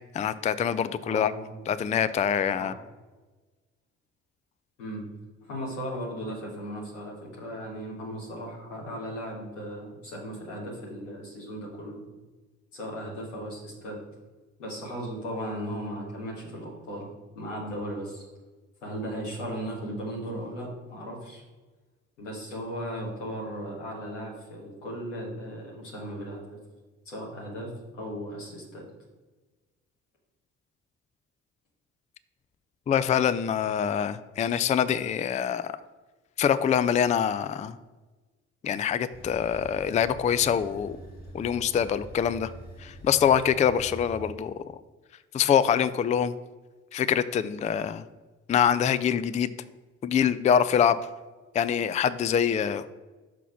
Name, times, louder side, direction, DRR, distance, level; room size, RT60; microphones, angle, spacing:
voice 1, 0.1-1.3 1.7-2.7 32.9-35.7 36.4-37.8 38.6-41.0 41.3-42.5 42.8-44.5 45.3-46.3 46.9-48.0 48.5-49.5 50.0-51.0 51.5-52.9, left 8 dB, 20° left, 15 dB, 0.3 m, -24 dB
voice 2, 1.0-1.6 2.5-2.7 4.8-5.0 5.4-12.0 12.7-14.0 14.6-17.1 17.3-18.3 18.8-21.4 22.2-26.6 27.0-28.8, equal, 90° left, -4 dB, 1.7 m, -36 dB
sound 1, 39.1-44.3, equal, 45° left, 2.1 m, -45 dB
5.9 x 3.9 x 5.8 m, 1.2 s
hypercardioid pair, 45°, 36 cm